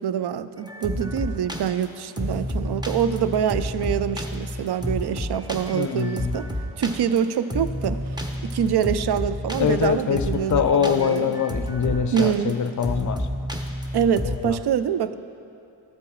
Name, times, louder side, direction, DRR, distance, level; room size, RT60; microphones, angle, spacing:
voice 1, 0.0-6.5 6.8-8.0 8.4-11.4 12.1-12.6 13.9-15.1, right 8 dB, 55° right, 13 dB, 0.5 m, -25 dB
sound 1, 0.6-14.4, equal, 10° right, 0.9 m, -30 dB
voice 2, 5.7-6.3 9.6-13.3 14.2-14.6, left 7 dB, 40° left, 11 dB, 0.5 m, -24 dB
13.5 x 7.6 x 3.1 m, 2.6 s
cardioid pair, 45°, 47 cm